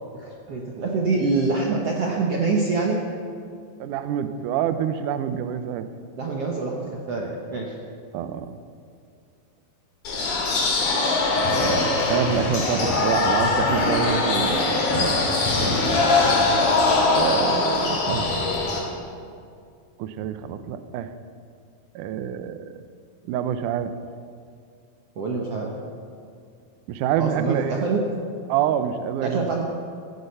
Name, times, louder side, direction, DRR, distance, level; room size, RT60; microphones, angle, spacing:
voice 1, 0.1-3.0 6.2-7.7 10.2-10.4 25.2-25.8 27.2-28.0 29.2-29.6, right 4 dB, 60° right, -1 dB, 1.6 m, -25 dB
voice 2, 3.8-5.9 8.1-8.6 11.3-15.2 17.2-18.3 20.0-21.1 22.0-22.7 23.3-23.9 26.9-27.7 28.5-29.4, right 9 dB, 80° right, 10 dB, 1.8 m, -27 dB
sound 1, 10.0-18.8, left 3 dB, 65° left, 4.4 m, -21 dB
15.5 x 15.0 x 5.6 m, 2.3 s
omnidirectional pair, 4.5 m